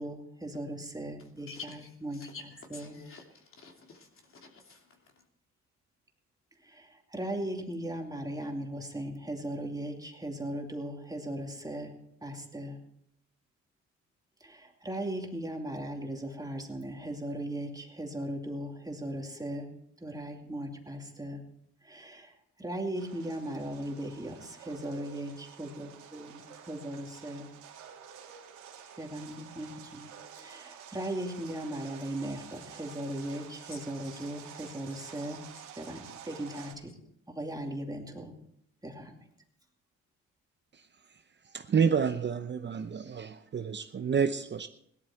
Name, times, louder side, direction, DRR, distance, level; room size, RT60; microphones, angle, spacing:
voice 1, 0.0-3.0 6.6-11.9 12.2-12.8 14.4-19.7 20.0-21.4 21.8-27.5 29.0-30.1 30.4-35.4 35.7-36.9 37.3-38.3 38.8-39.2, right 1 dB, 10° right, 2.7 m, -38 dB
voice 2, 1.5-5.2 33.7-33.8 34.1-34.4, left 4 dB, 45° left, 2.9 m, -49 dB
sound 1, 22.9-36.7, right 8 dB, 80° right, 2.7 m, -50 dB
voice 3, 41.5-44.7, right 6 dB, 35° right, 0.8 m, -29 dB
17.5 x 12.0 x 4.5 m
cardioid pair, 90°, 30 cm